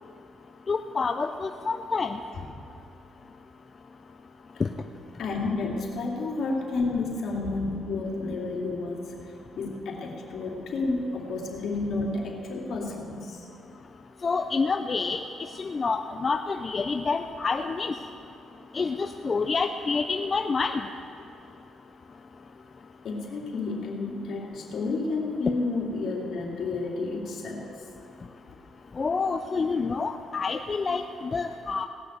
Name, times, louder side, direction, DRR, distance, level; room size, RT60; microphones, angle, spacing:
voice 1, 0.7-2.2 4.6-4.7 14.2-15.2 15.6-17.9 18.7-20.8 29.0-31.9, left 4 dB, 35° left, 7 dB, 0.5 m, -28 dB
voice 2, 5.2-9.1 9.6-13.5 23.0-27.7, left 3 dB, 65° left, -1 dB, 2.8 m, -30 dB
18.0 x 6.3 x 8.1 m, 2.9 s
cardioid pair, 90°, 0 cm